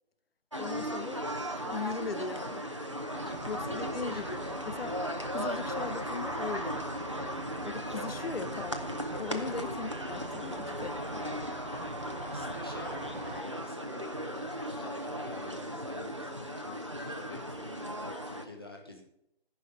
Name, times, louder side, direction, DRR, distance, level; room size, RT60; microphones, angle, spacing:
sound 1, 0.5-18.5, equal, 30° right, 0.7 m, -37 dB
voice 1, 0.6-1.2 1.6-2.7 3.5-5.0 5.3-6.8 7.6-11.2, left 4 dB, 75° left, 14 dB, 0.7 m, -39 dB
voice 2, 3.1-4.6 9.3-9.6 12.2-19.0, left 1 dB, 25° left, 0 dB, 1.1 m, -48 dB
sound 2, 3.1-13.4, right 3 dB, 55° right, 0.9 m, -45 dB
14.0 x 5.7 x 4.8 m, 0.78 s
figure-of-eight pair, 180°, 30 cm